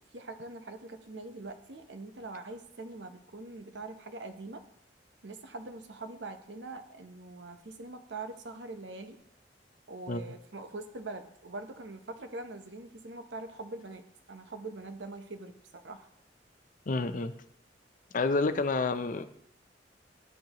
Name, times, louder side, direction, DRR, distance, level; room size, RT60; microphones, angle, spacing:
voice 1, 0.1-4.6 5.2-9.2 9.9-14.0 14.3-16.1, right 2 dB, 85° right, 7 dB, 0.8 m, -43 dB
voice 2, 16.9-17.3 18.1-19.3, left 3 dB, 50° left, 11 dB, 0.5 m, -29 dB
13.0 x 6.5 x 3.0 m, 0.73 s
head